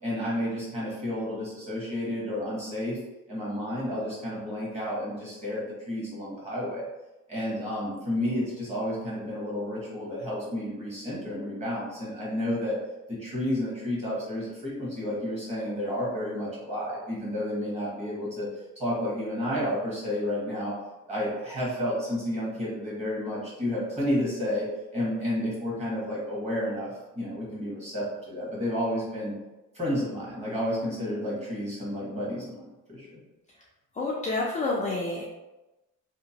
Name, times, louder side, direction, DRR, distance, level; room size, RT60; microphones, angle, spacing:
voice 1, 0.0-3.0 3.3-6.8 7.3-12.8 13.1-18.5 18.8-20.7 21.1-24.6 24.9-29.3 29.7-32.6 32.9-33.2, left 1 dB, 20° right, -7 dB, 1.2 m, -31 dB
voice 2, 33.9-35.2, left 2 dB, 25° left, -4 dB, 0.3 m, -28 dB
2.8 x 2.2 x 2.7 m, 1.0 s
cardioid pair, 120°, 32 cm